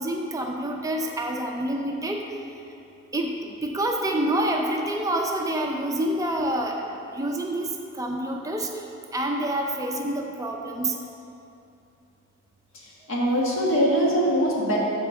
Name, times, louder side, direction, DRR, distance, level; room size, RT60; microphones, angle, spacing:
voice 1, 0.0-2.2 3.1-6.9 7.1-7.7 8.0-8.7 9.1-10.9, right 1 dB, 15° right, 1 dB, 0.5 m, -27 dB
voice 2, 12.7-14.8, equal, 70° left, -4 dB, 1.5 m, -23 dB
7.1 x 4.3 x 6.6 m, 2.7 s
head